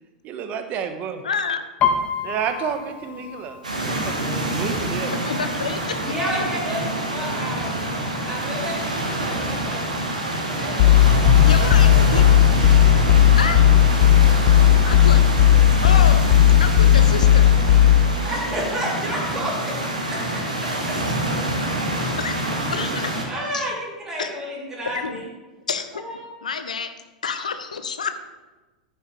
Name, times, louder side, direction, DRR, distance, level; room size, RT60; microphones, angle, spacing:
voice 1, 0.2-1.2 2.2-5.1, right 7 dB, 40° right, 8 dB, 1.1 m, -30 dB
voice 2, 1.2-1.7 5.2-6.0 11.4-12.3 13.4-13.7 14.8-15.3 15.8-16.2 16.6-17.5 20.9-21.3 22.0-22.4 22.7-23.2 23.5-23.7 24.2-24.4 24.9-25.2 25.7-26.0 26.4-28.1, left 5 dB, 75° left, 10 dB, 0.8 m, -28 dB
Piano, 1.8-5.5 5.8-6.2 6.6-7.2 7.8-7.9 8.1-9.1 9.5-9.6, left 6 dB, 35° left, 1.0 m, -28 dB
sound 1, 3.6-23.2, right 1 dB, 85° right, 1.8 m, -26 dB
voice 3, 6.0-7.7 8.2-9.8 10.4-12.0 18.2-19.8 20.1-21.2 22.5-22.8 23.3-25.3 25.9-26.2, equal, 10° right, -6 dB, 3.5 m, -31 dB
sound 2, 10.8-18.2, left 11 dB, 50° left, 0.4 m, -14 dB
11.0 x 9.5 x 3.4 m, 1.2 s
figure-of-eight pair, 90°, 4 cm